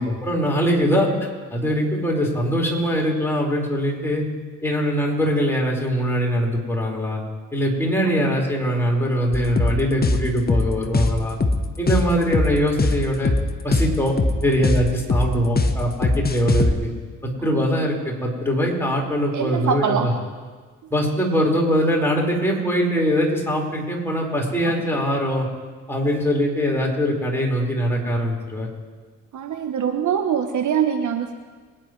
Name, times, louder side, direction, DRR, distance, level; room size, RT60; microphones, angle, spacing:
voice 1, 0.2-4.2 4.6-7.2 7.5-11.4 11.8-13.3 13.6-14.2 14.4-16.9 17.2-20.1 20.9-25.5 25.9-28.7, equal, 5° left, -2 dB, 4.8 m, -22 dB
sound 1, 9.3-16.7, left 2 dB, 25° left, 1.4 m, -21 dB
voice 2, 19.3-20.2 24.6-24.8 29.3-31.3, right 8 dB, 50° right, 7 dB, 1.1 m, -24 dB
25.0 x 10.5 x 3.2 m, 1.4 s
hypercardioid pair, 50°, 38 cm